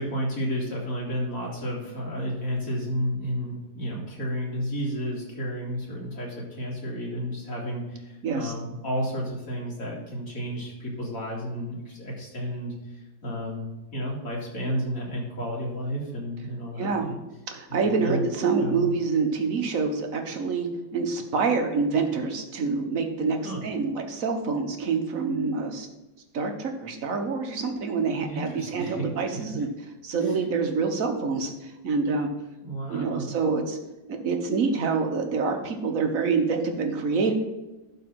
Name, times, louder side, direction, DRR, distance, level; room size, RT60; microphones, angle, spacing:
voice 1, 0.0-17.1 17.7-18.9 23.4-23.6 28.2-29.1 29.5-29.6 30.2-30.4 32.6-33.2, equal, 45° left, -3 dB, 3.1 m, -32 dB
voice 2, 8.2-8.5 16.8-17.1 17.5-25.9 26.3-29.7 30.0-32.3 32.9-33.8 34.1-37.3, right 4 dB, 50° right, 4 dB, 1.5 m, -26 dB
12.0 x 4.2 x 6.1 m, 1.1 s
omnidirectional pair, 2.0 m